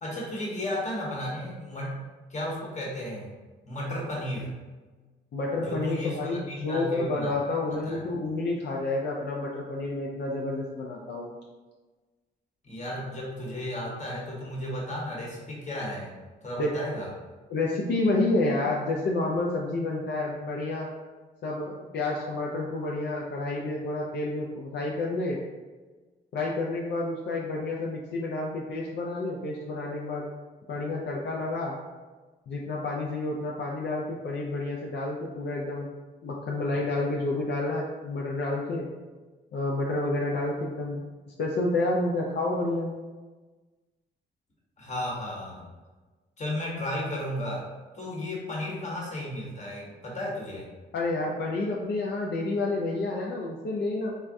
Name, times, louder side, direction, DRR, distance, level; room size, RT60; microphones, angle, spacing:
voice 1, 0.0-2.0 2.3-3.3 3.7-4.5 5.6-7.3 7.8-8.0 12.6-16.1 16.4-17.1 44.8-45.7 46.4-47.7 47.9-50.7, left 1 dB, 35° left, -3 dB, 1.0 m, -34 dB
voice 2, 5.3-11.3 16.6-16.8 17.5-20.9 21.4-25.4 26.3-30.3 30.7-31.8 32.5-35.9 36.2-38.9 39.5-41.0 41.4-42.9 50.9-54.1, left 2 dB, 60° left, -2 dB, 0.4 m, -29 dB
3.4 x 2.2 x 2.5 m, 1.3 s
supercardioid pair, 55°, 20 cm